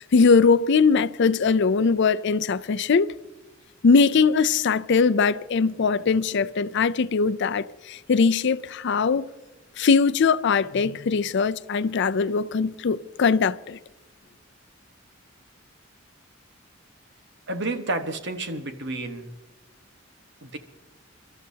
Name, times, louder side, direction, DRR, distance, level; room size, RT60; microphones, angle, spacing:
voice 1, 0.0-3.1 3.8-9.3 9.8-13.8, left 5 dB, 60° left, 0.5 m, -21 dB
voice 2, 17.5-19.3 20.4-20.6, right 2 dB, 60° right, 1.4 m, -30 dB
29.0 x 13.0 x 2.8 m
head